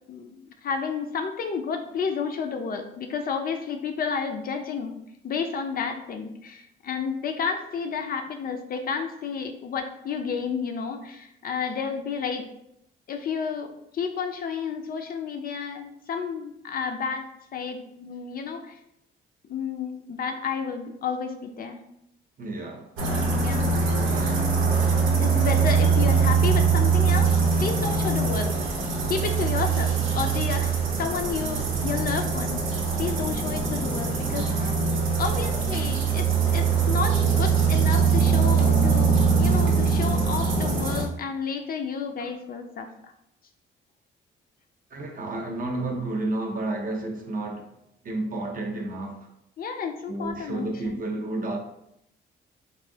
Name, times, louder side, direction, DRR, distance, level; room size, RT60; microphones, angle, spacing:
voice 1, 0.1-5.0 5.2-12.5 13.1-17.2 17.5-18.8 19.5-21.8 23.4-23.8 24.1-24.2 25.2-27.3 27.6-28.6 29.1-32.6 33.0-34.7 35.2-43.1 49.6-51.0, left 6 dB, 50° left, 5 dB, 0.4 m, -31 dB
voice 2, 22.4-24.6 44.9-47.7 48.0-49.3 50.1-51.6, right 2 dB, 45° right, 2 dB, 0.6 m, -32 dB
sound 1, 23.0-41.0, right 5 dB, 90° right, 0.7 m, -22 dB
3.0 x 2.5 x 2.7 m, 0.79 s
cardioid pair, 90°, 20 cm